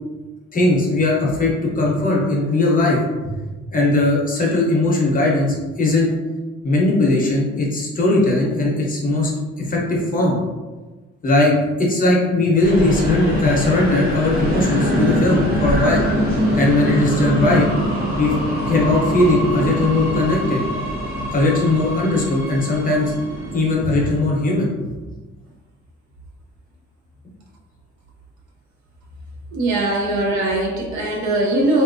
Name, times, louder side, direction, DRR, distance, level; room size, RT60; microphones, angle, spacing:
voice 1, 0.5-3.3 3.7-6.1 6.6-9.3 9.7-10.4 11.2-16.0 16.6-17.7 18.2-18.3 18.7-20.6 21.3-23.1 23.5-24.7, left 2 dB, 30° left, 0.7 m, -19 dB
sound 1, 12.6-24.2, equal, 50° right, 1.3 m, -23 dB
voice 2, 29.5-31.8, right 1 dB, 70° right, 0.7 m, -20 dB
3.9 x 2.4 x 2.5 m
cardioid pair, 165°, 29 cm